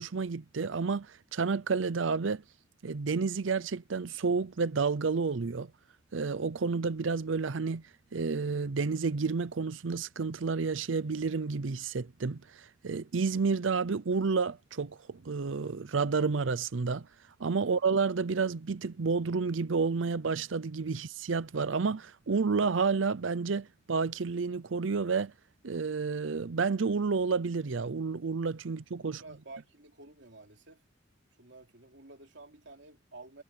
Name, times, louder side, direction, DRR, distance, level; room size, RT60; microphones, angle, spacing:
voice 1, 0.0-2.4 2.8-5.7 6.1-7.8 8.1-17.1 17.4-25.3 25.6-29.2, right 4 dB, 80° right, 0.6 m, -30 dB
voice 2, 29.0-30.8 31.4-33.4, right 2 dB, 65° right, 3.3 m, -51 dB
head